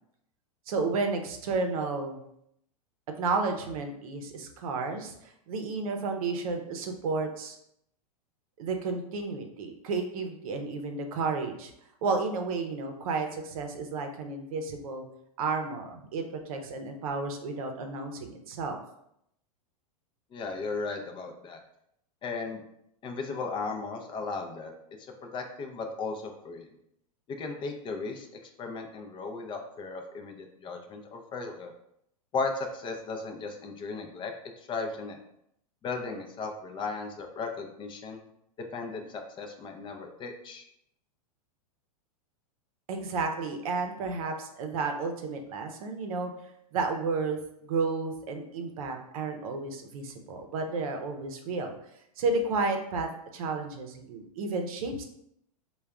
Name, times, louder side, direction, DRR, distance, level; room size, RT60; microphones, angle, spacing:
voice 1, 0.7-2.2 3.2-7.6 8.6-11.7 12.0-15.0 15.4-18.8 42.9-46.3 46.7-51.7 52.2-55.0, right 4 dB, 70° right, 5 dB, 0.7 m, -32 dB
voice 2, 20.3-21.6 22.2-22.6 23.0-24.7 25.3-26.7 27.3-31.7 32.3-34.3 34.7-35.2 35.8-38.2 38.7-40.6, left 4 dB, 25° left, 4 dB, 0.5 m, -36 dB
3.5 x 2.3 x 3.4 m, 0.75 s
hypercardioid pair, 120°, 19 cm